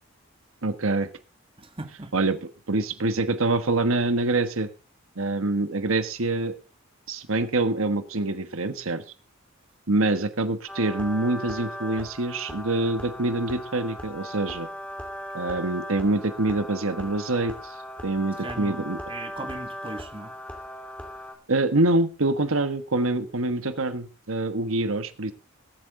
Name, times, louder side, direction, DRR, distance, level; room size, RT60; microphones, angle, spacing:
voice 1, 0.6-1.1 2.1-2.4 2.7-4.7 5.2-6.5 7.1-9.0 9.9-14.7 15.3-17.7 18.0-19.0 21.5-25.3, right 2 dB, 75° right, 1.3 m, -25 dB
voice 2, 1.6-2.1 18.4-20.3, right 2 dB, 25° right, 1.8 m, -38 dB
sound 1, 10.7-21.4, equal, 5° left, 2.6 m, -38 dB
21.5 x 8.8 x 3.7 m
head